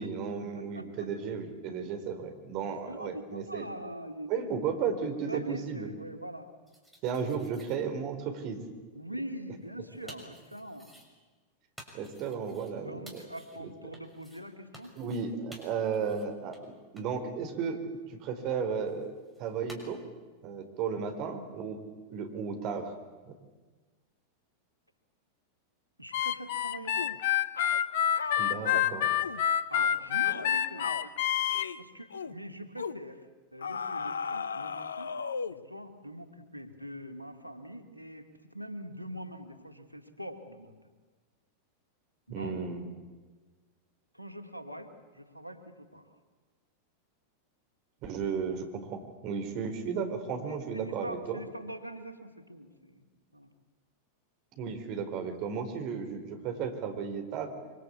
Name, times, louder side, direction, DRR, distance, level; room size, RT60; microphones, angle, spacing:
voice 1, 0.0-3.7 4.3-5.9 7.0-8.6 11.9-13.2 13.6-13.7 15.0-16.6 16.9-17.8 18.1-19.1 19.4-20.0 20.4-21.8 22.1-22.9 23.3-23.4 28.4-29.1 42.3-42.9 48.0-51.4 54.6-57.5, right 6 dB, 40° right, 6 dB, 4.4 m, -34 dB
voice 2, 0.5-1.1 2.7-4.3 5.2-6.5 8.9-10.9 12.8-14.9 26.0-27.3 29.7-31.1 31.8-35.2 35.5-40.7 42.3-42.6 44.1-46.1 50.5-53.1 53.3-53.5, right 1 dB, 90° left, 6 dB, 2.5 m, -43 dB
sound 1, 6.7-7.8 9.5-11.1 11.8-12.7 13.1-13.6 13.9-14.5 14.7-15.3 15.5-16.3 16.5-16.6 17.0-17.1 18.9-19.8, equal, ahead, 6.3 m, -53 dB
Harmonica, 26.1-31.7, left 10 dB, 55° left, 1.3 m, -27 dB
sound 2, 27.0-27.2 27.6-27.8 28.2-28.9 29.2-29.4 29.7-29.9 30.2-30.5 30.8-31.1 31.5-31.8 32.1-32.3 32.8-33.0 33.6-35.7, left 5 dB, 70° left, 0.8 m, -36 dB
25.5 x 25.0 x 8.5 m, 1.3 s
figure-of-eight pair, 90°, 0 cm